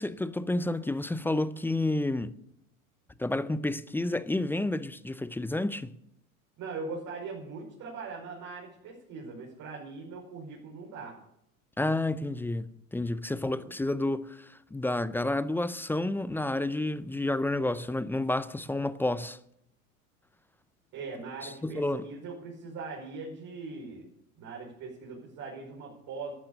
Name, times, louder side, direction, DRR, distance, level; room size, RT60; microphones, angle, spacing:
voice 1, 0.0-2.3 3.2-5.9 11.8-19.4 21.6-22.1, left 2 dB, 5° left, 0.5 m, -30 dB
voice 2, 6.6-11.2 13.3-13.7 20.9-24.1 24.4-26.3, right 4 dB, 45° right, 5.3 m, -41 dB
13.5 x 11.5 x 6.7 m
hypercardioid pair, 100°, 42 cm